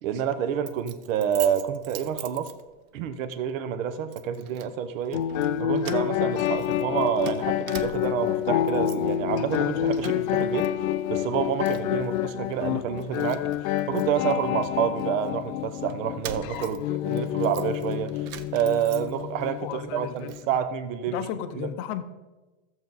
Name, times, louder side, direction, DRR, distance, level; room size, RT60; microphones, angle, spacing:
voice 1, 0.0-2.5 2.9-5.2 5.6-10.7 11.1-13.4 13.9-18.2 18.5-21.2 21.6-21.7, right 9 dB, 70° right, 1.0 m, -28 dB
Keys jangling, 0.7-3.0 3.3-3.5 4.1-4.7 5.1-5.5 5.8-8.3 8.6-9.2 9.5-10.7 10.9-12.1 12.5-12.6 13.0-15.3 15.9-19.5 19.8-20.5, right 11 dB, 35° right, 0.4 m, -43 dB
sound 1, 5.1-20.6, left 11 dB, 80° left, 0.7 m, -28 dB
voice 2, 19.6-20.3 21.1-22.0, left 10 dB, 35° left, 0.6 m, -33 dB
14.0 x 7.3 x 4.0 m
supercardioid pair, 165°, 40 cm